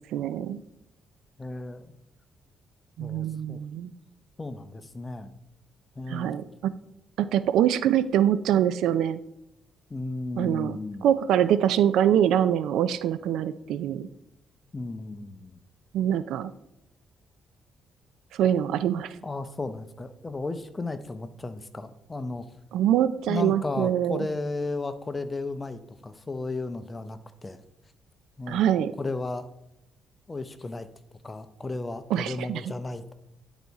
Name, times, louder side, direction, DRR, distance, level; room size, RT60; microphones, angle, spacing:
voice 1, 0.1-0.6 3.0-3.9 6.1-6.7 7.2-9.2 10.4-14.0 15.9-16.5 18.3-19.1 22.7-24.2 28.5-28.9 32.1-32.6, right 10 dB, 85° right, 14 dB, 0.3 m, -24 dB
voice 2, 1.4-1.9 3.0-3.6 4.4-5.3 6.0-6.4 9.9-11.1 14.7-15.5 19.2-22.5 23.3-27.6 28.4-28.6 29.0-29.5 30.3-30.9 31.2-33.1, left 2 dB, 25° left, 11 dB, 0.6 m, -34 dB
10.5 x 4.1 x 4.6 m, 0.85 s
cardioid pair, 90°, 0 cm